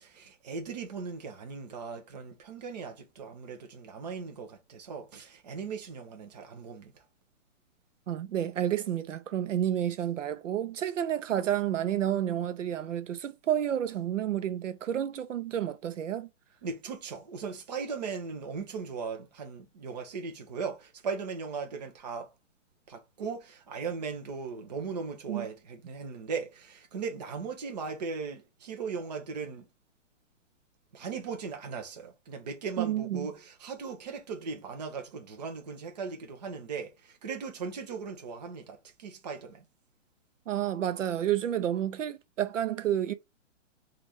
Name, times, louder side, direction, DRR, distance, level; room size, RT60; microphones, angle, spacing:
voice 1, 0.0-6.9 16.6-22.3 22.9-29.7 30.9-39.7, right 5 dB, 35° right, 0.7 m, -38 dB
voice 2, 8.1-16.3 25.3-25.5 32.8-33.3 40.5-43.1, right 10 dB, 80° right, 0.7 m, -30 dB
3.1 x 2.5 x 4.1 m
hypercardioid pair, 170°, 37 cm